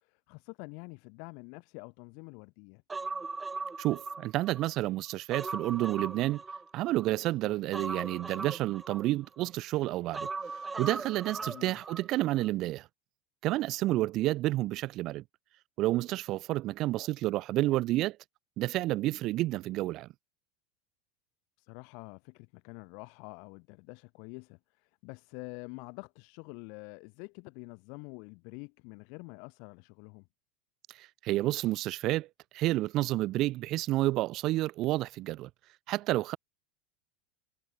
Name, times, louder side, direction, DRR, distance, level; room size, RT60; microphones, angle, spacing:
voice 1, 0.0-2.8 7.4-7.5 11.4-11.7 13.9-14.1 21.6-30.3, left 36 dB, 60° left, 0.8 m, -47 dB
Human voice, 2.9-4.7 5.1-7.1 7.7-9.5 10.1-12.1 12.4-12.5, right 4 dB, 15° right, 0.7 m, -39 dB
voice 2, 3.8-6.4 6.7-10.3 10.8-12.9 13.4-15.2 15.8-18.2 18.6-20.1 31.0-32.3 32.5-35.5 35.9-36.4, right 17 dB, 50° right, 0.3 m, -30 dB
hypercardioid pair, 90°, 0 cm